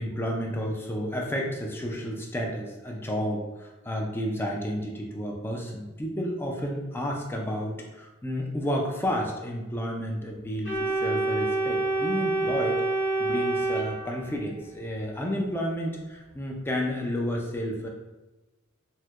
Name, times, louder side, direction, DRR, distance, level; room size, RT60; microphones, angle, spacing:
voice 1, 0.0-12.8 13.2-17.9, equal, 10° left, 0 dB, 0.4 m, -31 dB
Organ, 10.6-14.6, right 2 dB, 50° left, 1.0 m, -27 dB
4.3 x 2.2 x 2.4 m, 1.1 s
head